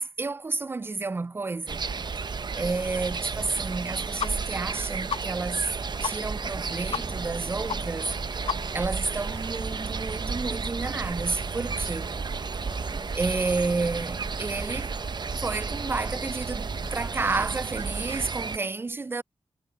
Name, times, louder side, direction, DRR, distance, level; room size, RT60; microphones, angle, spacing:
voice 1, 0.0-1.9 2.6-5.7 6.0-8.5 8.7-12.1 13.1-14.9 15.4-19.2, right 3 dB, 25° right, 0.3 m, -30 dB
sound 1, 1.7-18.6, right 5 dB, 50° right, 0.7 m, -32 dB
sound 2, 4.2-4.3 4.6-4.7 5.1-5.2 5.6-5.7 6.0-6.1 6.4-6.5 6.9-7.0 7.3-7.4 7.7-7.8 8.1-8.2 8.5-8.9, left 7 dB, 75° left, 0.8 m, -31 dB
sound 3, 6.5-17.6, left 3 dB, 40° left, 4.6 m, -48 dB
cardioid pair, 55°, 10 cm